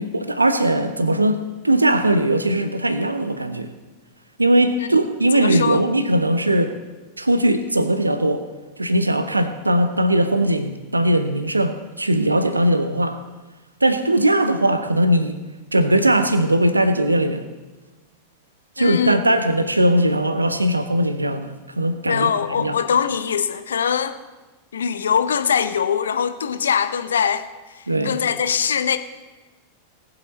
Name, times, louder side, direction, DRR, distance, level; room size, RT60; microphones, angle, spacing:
voice 1, 0.0-3.7 4.4-6.8 7.2-8.4 8.8-13.2 13.8-15.4 15.7-17.4 18.8-22.3 22.6-22.8 27.9-28.2, right 1 dB, 80° right, 10 dB, 0.8 m, -19 dB
voice 2, 5.3-5.8 18.8-19.2 22.1-24.2 24.7-27.5 28.0-29.0, left 7 dB, 65° left, 11 dB, 0.7 m, -22 dB
19.0 x 7.9 x 4.2 m, 1.2 s
figure-of-eight pair, 90°, 0 cm